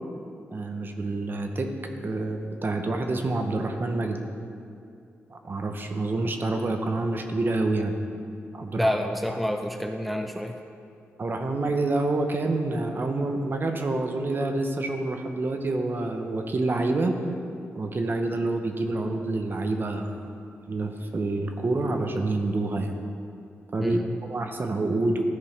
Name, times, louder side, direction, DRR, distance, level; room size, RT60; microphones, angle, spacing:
voice 1, 0.5-4.2 5.3-8.0 8.5-8.9 11.2-17.2 17.7-20.3 20.7-22.9 23.7-24.0 24.3-25.2, right 2 dB, 45° right, 5 dB, 0.8 m, -27 dB
voice 2, 8.8-10.6 23.8-24.2, equal, ahead, 5 dB, 0.5 m, -28 dB
13.0 x 5.2 x 3.3 m, 2.5 s
cardioid pair, 70°, 5 cm